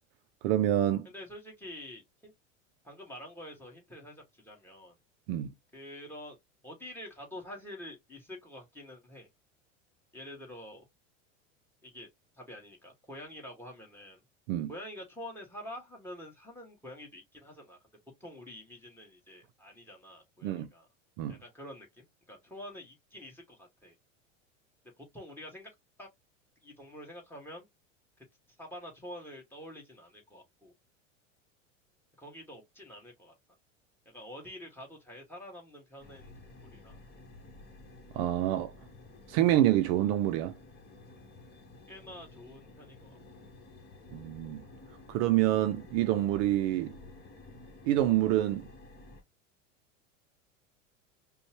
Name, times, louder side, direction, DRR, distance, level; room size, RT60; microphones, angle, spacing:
voice 1, 0.4-1.1 5.3-5.5 14.5-14.7 20.4-20.7 21.2-21.4 38.1-38.7 39.3-40.6 44.1-44.6 45.1-46.9 47.8-48.7, right 13 dB, 50° right, 0.6 m, -27 dB
voice 2, 1.0-2.3 2.8-5.0 5.7-6.4 6.6-9.3 10.1-10.9 11.8-12.1 12.3-14.2 14.7-17.8 18.2-20.9 21.3-24.0 25.0-25.7 26.0-26.1 26.6-27.7 28.2-28.3 28.6-30.7 32.2-33.3 34.1-36.3 36.6-37.0 41.9-43.2, left 1 dB, 5° left, 2.0 m, -47 dB
sound 1, 36.0-49.2, left 2 dB, 25° left, 1.6 m, -52 dB
5.1 x 2.4 x 3.0 m
hypercardioid pair, 85°, 38 cm